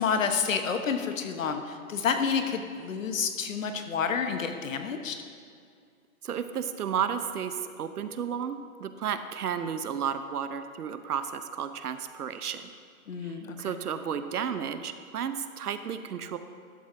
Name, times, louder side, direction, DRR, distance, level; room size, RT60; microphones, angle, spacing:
voice 1, 0.0-5.2 13.1-13.6, left 6 dB, 60° left, 6 dB, 1.0 m, -29 dB
voice 2, 6.2-12.7 13.2-16.4, right 8 dB, 85° right, 10 dB, 0.8 m, -33 dB
12.0 x 6.5 x 3.8 m, 2.2 s
hypercardioid pair, 165°, 44 cm